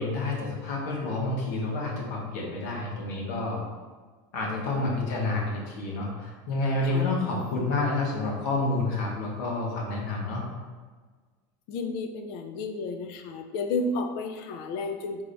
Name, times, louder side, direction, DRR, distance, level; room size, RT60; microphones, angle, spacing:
voice 1, 0.0-3.6 4.3-10.4, left 2 dB, 70° left, -2 dB, 1.2 m, -29 dB
voice 2, 4.5-4.9 6.8-7.0 11.7-15.2, left 3 dB, 50° left, 6 dB, 0.4 m, -32 dB
3.9 x 3.5 x 3.4 m, 1.4 s
supercardioid pair, 160°, 10 cm